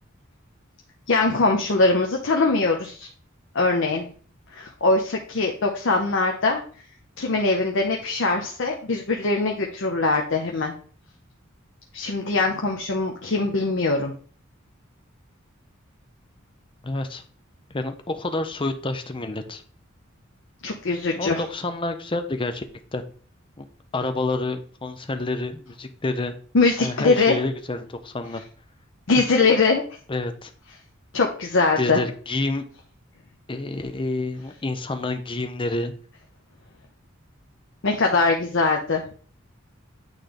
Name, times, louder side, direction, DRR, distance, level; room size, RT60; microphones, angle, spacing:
voice 1, 1.1-3.1 3.5-4.1 4.5-6.6 7.2-10.7 11.9-14.1 20.6-21.4 26.5-27.4 29.1-29.8 31.1-32.0 37.8-39.0, left 3 dB, 65° left, 1 dB, 0.8 m, -22 dB
voice 2, 16.8-17.2 17.7-19.6 21.1-22.6 22.9-23.0 23.6-23.7 23.9-26.4 26.8-28.4 30.1-30.5 31.8-32.6 33.5-35.9, left 2 dB, 25° left, 7 dB, 0.7 m, -28 dB
8.8 x 3.3 x 3.9 m, 0.43 s
head